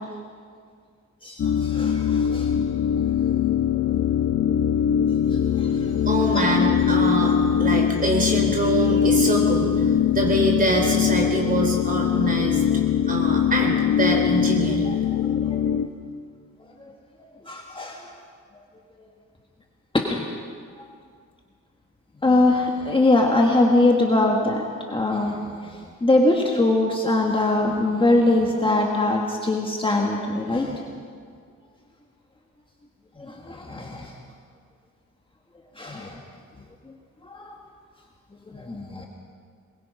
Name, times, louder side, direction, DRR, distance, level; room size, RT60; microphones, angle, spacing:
voice 1, 1.2-2.5 3.0-3.1 3.7-3.8 5.3-6.0 6.3-6.6 14.8-15.7 16.8-16.9 17.4-18.1 19.9-20.2 22.2-30.8 33.2-34.1 35.8-36.2 37.2-37.6 38.5-39.1, left 2 dB, 15° left, 0 dB, 1.6 m, -23 dB
sound 1, 1.4-15.9, left 8 dB, 50° left, 1.0 m, -22 dB
voice 2, 6.0-12.6 13.1-15.0, right 2 dB, 25° right, 1 dB, 4.0 m, -24 dB
22.0 x 21.5 x 5.5 m, 2.1 s
wide cardioid pair, 150°, 31 cm